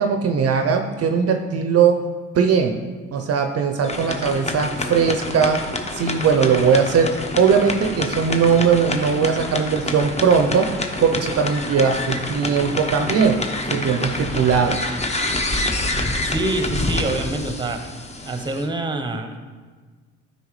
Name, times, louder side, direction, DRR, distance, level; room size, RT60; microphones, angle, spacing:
voice 1, 0.0-2.0 2.3-2.8 3.1-5.6 5.9-10.7 11.0-13.4 13.7-14.8, right 6 dB, 50° right, 5 dB, 0.6 m, -19 dB
sound 1, 3.8-18.7, left 2 dB, 20° left, 0.9 m, -27 dB
voice 2, 16.2-17.9 18.2-19.4, right 2 dB, 15° right, 7 dB, 0.9 m, -26 dB
9.2 x 5.6 x 3.2 m, 1.5 s
supercardioid pair, 70°, 32 cm